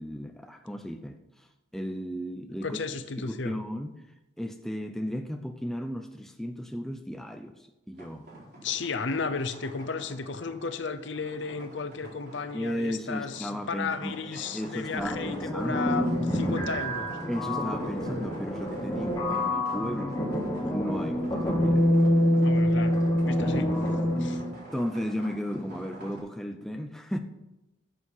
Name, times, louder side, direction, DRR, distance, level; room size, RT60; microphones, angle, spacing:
voice 1, 0.0-1.5 1.7-2.8 3.2-4.0 4.4-7.5 7.9-8.3 12.5-15.8 17.3-20.2 20.7-21.9 24.7-27.2, equal, ahead, 6 dB, 0.5 m, -35 dB
voice 2, 2.6-3.6 8.6-17.2 17.8-17.9 20.6-20.7 22.4-23.0 23.2-23.7 24.2-24.4, left 4 dB, 65° left, 11 dB, 0.7 m, -34 dB
sound 1, 8.0-26.2, right 1 dB, 55° right, 4.2 m, -47 dB
sound 2, 15.0-24.5, left 1 dB, 15° left, 1.6 m, -26 dB
12.5 x 6.7 x 5.6 m, 0.98 s
head